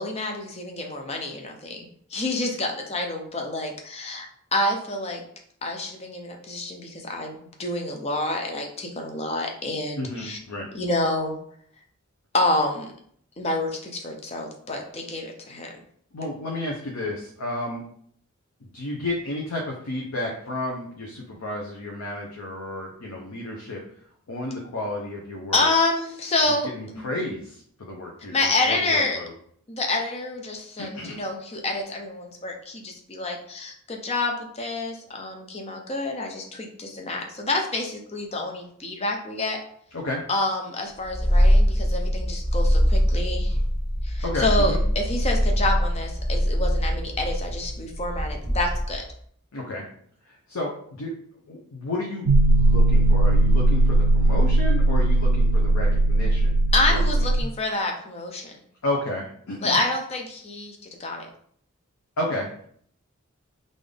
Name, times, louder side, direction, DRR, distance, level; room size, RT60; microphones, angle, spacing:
voice 1, 0.0-4.3 4.5-5.2 5.6-10.4 10.7-11.4 12.3-12.9 13.4-15.7 25.5-27.0 28.3-29.2 29.7-39.6 40.3-43.5 44.0-49.0 56.7-58.6 59.6-61.3, left 2 dB, 30° left, 2 dB, 0.6 m, -28 dB
voice 2, 9.9-10.7 16.1-17.8 18.7-23.8 24.3-25.7 26.5-29.3 30.8-31.2 39.9-40.2 44.2-44.8 49.5-49.9 50.2-51.1 51.5-56.6 56.9-57.0 58.8-59.8 62.2-62.7, left 1 dB, 80° left, -1 dB, 0.7 m, -32 dB
Purr, 41.0-49.1, equal, 50° left, 1.4 m, -23 dB
sound 1, 52.3-57.4, right 2 dB, 75° right, 0.3 m, -18 dB
3.8 x 2.5 x 3.4 m, 0.62 s
head